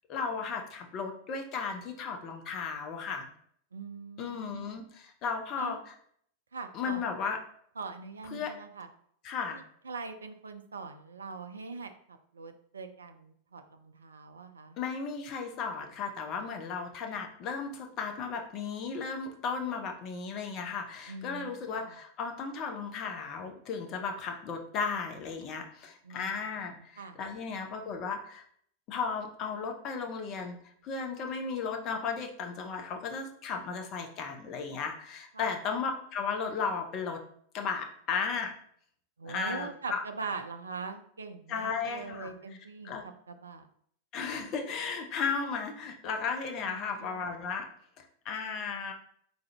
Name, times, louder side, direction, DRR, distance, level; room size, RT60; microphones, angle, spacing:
voice 1, 0.1-3.3 4.2-5.9 6.7-7.4 8.3-8.5 9.2-9.6 14.8-28.4 28.9-37.2 37.5-38.5 39.2-40.0 41.5-42.3 42.8-43.0 44.1-47.7 48.0-48.9, left 5 dB, 35° left, 4 dB, 0.6 m, -35 dB
voice 2, 3.7-4.8 5.6-5.8 6.5-7.1 7.8-8.9 9.5-14.8 21.1-21.9 26.0-26.4 27.0-27.2 35.3-35.5 39.2-43.7 46.6-47.3, right 4 dB, 70° right, 8 dB, 0.3 m, -42 dB
3.6 x 2.6 x 3.2 m, 0.64 s
figure-of-eight pair, 90°, 0 cm